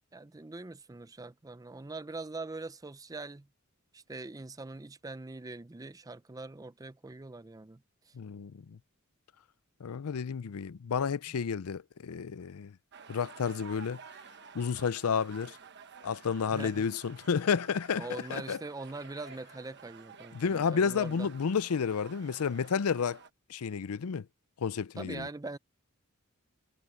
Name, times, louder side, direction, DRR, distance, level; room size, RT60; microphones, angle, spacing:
voice 1, 0.1-3.5 3.9-8.1 16.5-16.9 18.0-21.3 25.0-25.6, right 3 dB, 15° right, 0.5 m, -42 dB
voice 2, 8.1-8.8 9.8-12.7 13.1-14.0 14.5-15.6 16.0-18.6 20.3-23.2 23.5-24.3 24.6-25.3, left 6 dB, 90° left, 0.5 m, -31 dB
sound 1, 12.9-23.3, right 5 dB, 55° right, 1.2 m, -52 dB
head